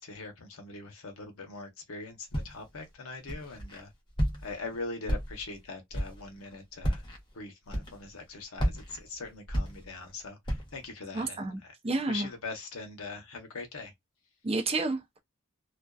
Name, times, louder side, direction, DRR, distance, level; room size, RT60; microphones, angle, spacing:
voice 1, 0.0-3.9 4.4-7.0 7.3-11.5 12.1-13.9, left 3 dB, 80° left, 0.8 m, -42 dB
Walk footsteps, 2.3-2.8 3.3-3.8 4.2-4.6 5.0-5.6 5.9-6.3 6.8-7.2 7.7-8.2 8.6-10.1 10.4-10.8, equal, 25° left, 0.7 m, -32 dB
voice 2, 11.1-11.6 11.8-12.3 14.4-15.2, right 3 dB, 30° right, 0.5 m, -30 dB
2.5 x 2.2 x 2.3 m
head